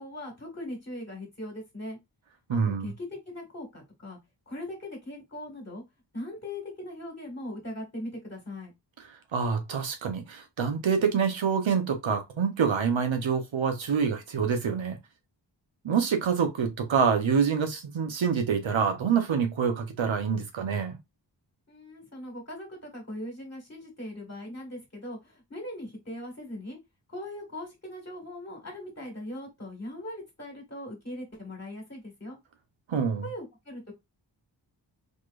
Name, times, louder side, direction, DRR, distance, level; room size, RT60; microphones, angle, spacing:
voice 1, 0.0-2.0 2.5-4.2 4.5-5.8 6.1-8.7 21.7-26.8 27.1-32.4 33.2-33.9, left 1 dB, 35° left, 1.9 m, -40 dB
voice 2, 2.5-2.9 9.3-15.0 15.8-21.0 32.9-33.2, right 6 dB, 85° right, 1.0 m, -26 dB
4.2 x 3.2 x 2.5 m
wide cardioid pair, 110°, 45 cm